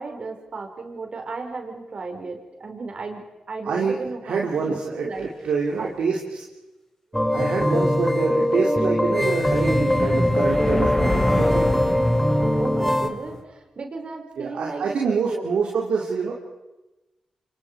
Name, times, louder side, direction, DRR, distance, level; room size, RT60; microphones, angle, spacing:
voice 1, 0.0-3.2 3.5-4.8 5.0-5.3 5.8-5.9 12.6-15.5, right 3 dB, 60° right, 3 dB, 4.7 m, -34 dB
voice 2, 3.7-4.0 4.2-6.4 7.3-11.5 14.4-16.3, right 5 dB, 80° right, -1 dB, 2.8 m, -26 dB
sound 1, 7.1-13.1, left 1 dB, 5° left, 3.0 m, -21 dB
sound 2, 9.4-13.4, left 1 dB, 25° left, 5.4 m, -26 dB
29.5 x 25.0 x 4.8 m, 1.0 s
supercardioid pair, 45°, 2 cm